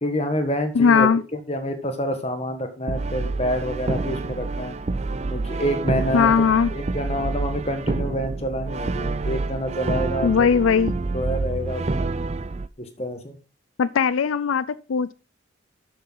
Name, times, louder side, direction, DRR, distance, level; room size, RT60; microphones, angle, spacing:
voice 1, 0.0-4.8 5.3-10.6 11.1-12.1 12.8-13.4, equal, 30° left, 1.5 m, -28 dB
voice 2, 0.8-1.2 6.1-6.7 10.2-10.9 13.8-15.1, left 6 dB, 85° left, 0.4 m, -19 dB
Brass instrument, 2.9-12.7, right 3 dB, 30° right, 0.4 m, -28 dB
12.5 x 6.6 x 3.9 m
head